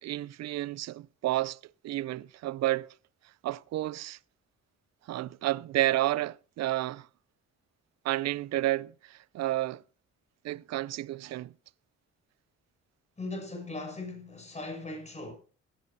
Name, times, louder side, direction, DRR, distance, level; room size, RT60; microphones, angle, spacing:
voice 1, 0.0-1.6 1.8-2.9 3.4-4.2 5.1-7.1 8.0-9.8 10.4-11.5, right 15 dB, 60° right, 0.5 m, -31 dB
voice 2, 13.2-15.3, left 2 dB, 20° left, 6.9 m, -39 dB
16.5 x 13.5 x 2.8 m
cardioid pair, 90°, 30 cm